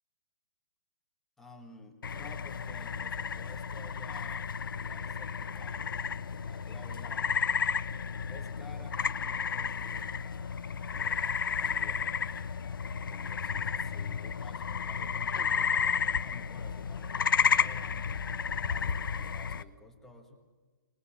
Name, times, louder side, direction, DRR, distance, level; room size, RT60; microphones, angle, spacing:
voice 1, 1.4-7.3 8.3-10.6 10.9-12.3 12.6-18.2 18.6-20.4, left 2 dB, 5° left, 1 dB, 1.6 m, -53 dB
sound 1, 2.0-19.6, left 6 dB, 80° left, 0.9 m, -32 dB
23.5 x 20.5 x 7.2 m, 1.4 s
hypercardioid pair, 175°, 11 cm